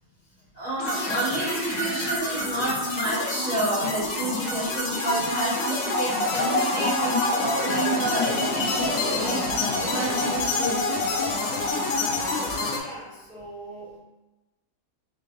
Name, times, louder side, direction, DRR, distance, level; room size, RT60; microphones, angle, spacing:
voice 1, 0.5-11.3 12.0-12.4, right 1 dB, 35° right, -10 dB, 1.1 m, -30 dB
sound 1, 0.8-12.8, left 2 dB, 80° left, 1.1 m, -27 dB
sound 2, 0.8-10.6, equal, 55° right, 1.1 m, -33 dB
voice 2, 12.7-14.0, right 2 dB, ahead, -13 dB, 1.3 m, -42 dB
3.6 x 3.0 x 2.5 m, 1.0 s
omnidirectional pair, 1.5 m